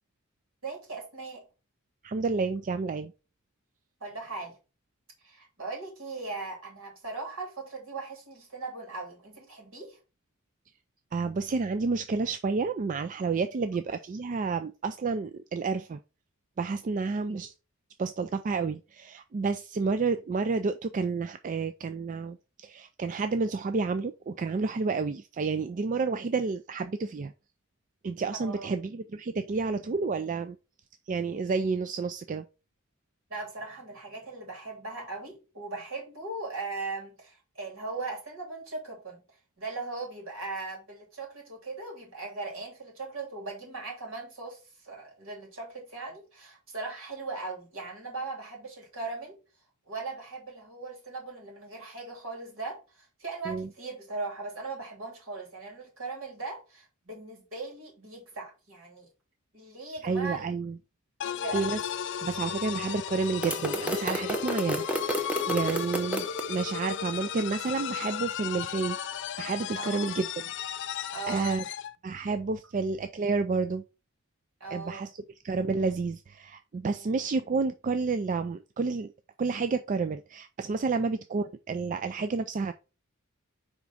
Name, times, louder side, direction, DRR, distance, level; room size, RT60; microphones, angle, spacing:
voice 1, 0.6-1.4 4.0-4.5 5.2-10.0 17.3-17.4 28.4-28.7 33.3-39.2 39.6-49.4 49.9-59.1 59.5-60.5 61.2-61.6 69.8-70.1 71.1-71.6 74.6-75.1 76.9-77.1, right 3 dB, 70° right, 2.9 m, -39 dB
voice 2, 2.0-3.1 11.1-16.0 16.6-17.5 18.0-27.3 28.0-30.6 31.1-32.4 53.5-53.7 60.0-60.8 61.2-61.8 62.2-69.0 69.4-70.5 70.8-70.9 71.3-71.6 72.0-73.8 74.7-75.1 75.4-79.1 79.4-82.7, right 4 dB, 35° right, 0.4 m, -30 dB
sound 1, 61.2-71.9, left 9 dB, 60° left, 0.4 m, -35 dB
sound 2, 63.4-66.4, equal, 5° right, 0.7 m, -31 dB
5.1 x 3.6 x 5.6 m
head